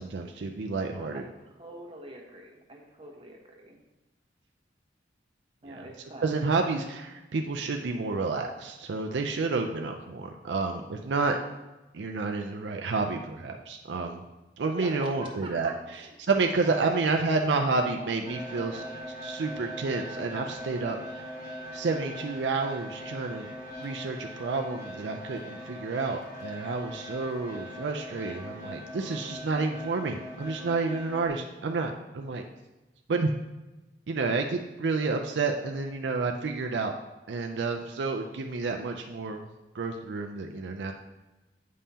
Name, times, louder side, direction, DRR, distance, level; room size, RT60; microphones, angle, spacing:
voice 1, 0.0-1.2 5.6-5.8 6.2-11.4 11.9-14.2 14.6-15.7 16.3-18.8 19.2-21.3 21.7-23.5 23.8-32.4 33.1-33.3 34.1-36.9 37.3-39.5 39.7-40.9, right 3 dB, 75° right, 3 dB, 0.5 m, -30 dB
voice 2, 0.8-3.8 5.6-6.4 14.7-16.1 16.6-18.1 18.7-19.0 27.3-27.6, right 1 dB, 30° right, -1 dB, 1.2 m, -45 dB
sound 1, 18.2-31.3, equal, 45° left, 2.4 m, -41 dB
8.5 x 5.4 x 2.8 m, 1.1 s
head